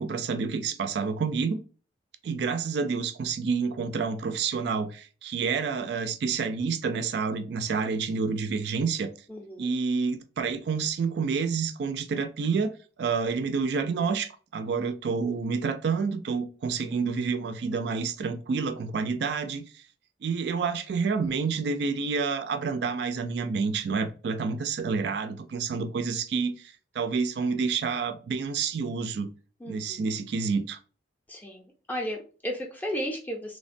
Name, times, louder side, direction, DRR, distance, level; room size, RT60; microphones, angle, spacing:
voice 1, 0.0-1.6 2.2-9.1 9.6-12.7 13.0-19.8 20.2-29.3 29.7-30.8, right 5 dB, 60° right, 0.3 m, -29 dB
voice 2, 9.3-9.7 29.6-30.1 31.3-33.6, equal, 10° left, 0.4 m, -34 dB
3.1 x 2.1 x 2.5 m
head